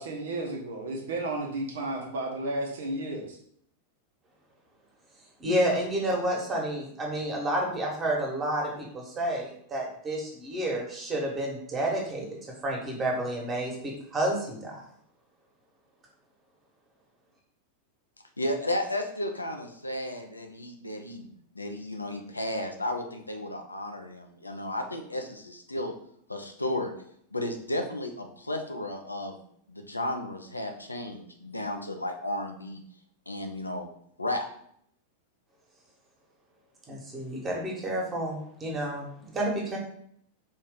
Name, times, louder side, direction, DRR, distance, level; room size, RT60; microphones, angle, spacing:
voice 1, 0.0-3.4, right 2 dB, 60° right, 0 dB, 0.9 m, -33 dB
voice 2, 5.4-12.3 12.6-14.8 36.9-39.1 39.3-39.8, right 1 dB, 25° right, -1 dB, 1.4 m, -30 dB
voice 3, 18.4-21.3 21.6-25.9 26.3-26.9 27.3-29.4 29.7-32.8 33.3-33.9 34.2-34.4, left 1 dB, 85° left, 5 dB, 0.6 m, -33 dB
4.3 x 3.1 x 3.7 m, 0.67 s
figure-of-eight pair, 90°, 0 cm